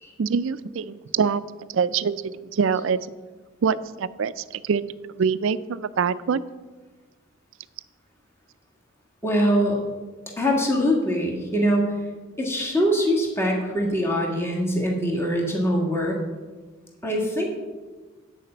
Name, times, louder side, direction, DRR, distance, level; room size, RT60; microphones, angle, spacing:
voice 1, 0.2-1.4 1.7-3.0 3.6-4.8 5.1-6.4, right 6 dB, 65° right, 16 dB, 0.4 m, -24 dB
voice 2, 9.2-9.8 10.4-12.0 12.4-16.2 17.0-17.5, equal, 10° left, -1 dB, 1.7 m, -23 dB
9.8 x 5.0 x 7.8 m, 1.3 s
head